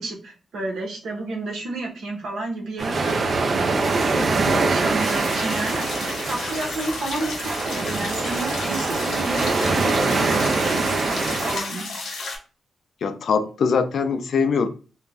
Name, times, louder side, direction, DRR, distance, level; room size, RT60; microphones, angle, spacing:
voice 1, 0.0-3.3 3.8-5.8 6.2-11.2 11.4-11.9, right 2 dB, 80° right, 0.9 m, -31 dB
sound 1, 2.8-11.6, right 3 dB, 45° right, 0.4 m, -24 dB
sound 2, 5.0-12.4, left 3 dB, 80° left, 0.8 m, -33 dB
voice 2, 13.0-14.7, left 5 dB, 60° left, 0.4 m, -22 dB
2.5 x 2.2 x 3.3 m
wide cardioid pair, 150°, 0 cm